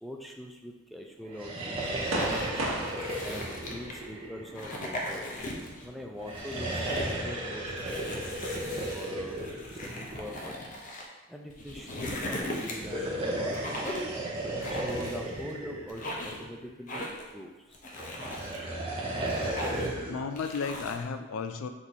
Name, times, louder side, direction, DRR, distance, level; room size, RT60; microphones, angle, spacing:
voice 1, 0.0-2.5 3.2-5.2 5.8-8.4 8.9-10.6 11.3-14.1 14.7-17.5, equal, ahead, 1 dB, 0.3 m, -43 dB
sound 1, 1.3-4.9 6.2-10.5 12.7-16.7 18.0-20.3, right 1 dB, 30° right, 0.8 m, -35 dB
sound 2, 1.9-4.1 4.5-5.9 6.2-7.2 7.8-11.0 11.5-13.0 13.5-14.2 14.6-15.5 15.9-16.4 16.9-17.3 17.7-18.6 19.0-20.0 20.4-21.0, left 1 dB, 40° left, 0.6 m, -38 dB
sound 3, 2.1-8.1, right 1 dB, 85° right, 0.8 m, -39 dB
voice 2, 19.4-21.7, left 5 dB, 90° left, 8 dB, 0.3 m, -35 dB
4.5 x 2.6 x 4.1 m, 1.1 s
head